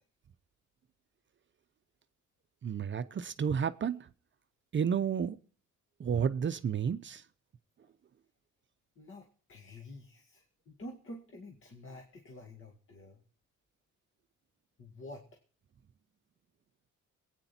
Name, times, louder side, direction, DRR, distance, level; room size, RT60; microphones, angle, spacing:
voice 1, 2.6-4.1 4.7-5.4 6.0-7.2, right 7 dB, 40° right, 0.7 m, -31 dB
voice 2, 9.0-13.2 14.8-15.2, left 1 dB, 40° left, 2.1 m, -49 dB
21.0 x 9.1 x 4.3 m
cardioid pair, 90°, 30 cm